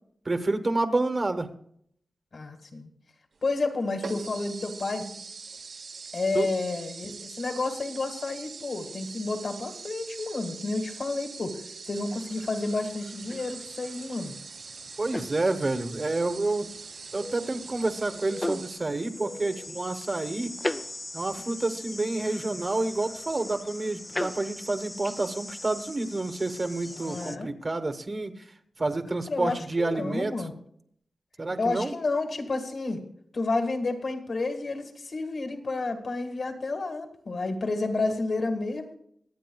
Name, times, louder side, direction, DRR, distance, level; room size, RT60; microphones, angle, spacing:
voice 1, 0.2-1.5 6.3-6.5 15.0-16.7 17.1-20.5 21.1-28.4 28.8-30.5 31.4-31.9, right 2 dB, 35° right, 7 dB, 1.1 m, -29 dB
voice 2, 2.3-2.9 3.4-5.1 6.1-14.3 27.0-27.5 29.3-30.5 31.6-33.0 33.3-38.9, left 3 dB, 55° left, 5 dB, 1.8 m, -30 dB
sound 1, 3.4-3.5 4.0-18.8, right 4 dB, 85° right, 1.8 m, -43 dB
sound 2, 12.1-27.4, left 1 dB, 15° left, 0.4 m, -40 dB
25.5 x 8.9 x 2.3 m, 0.66 s
wide cardioid pair, 110°, 0 cm